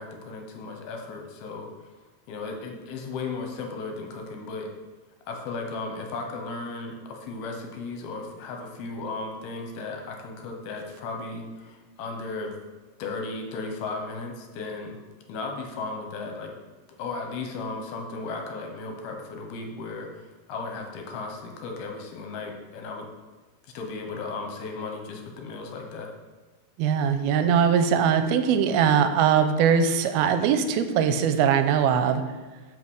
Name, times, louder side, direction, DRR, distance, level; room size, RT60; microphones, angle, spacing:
voice 1, 0.0-1.9 2.3-4.7 5.3-12.5 13.0-15.0 15.3-16.5 17.0-23.1 23.7-26.1, left 3 dB, 80° left, 3 dB, 2.9 m, -35 dB
voice 2, 26.8-32.2, right 7 dB, 85° right, 9 dB, 2.5 m, -21 dB
8.6 x 5.5 x 6.3 m, 1.3 s
omnidirectional pair, 4.5 m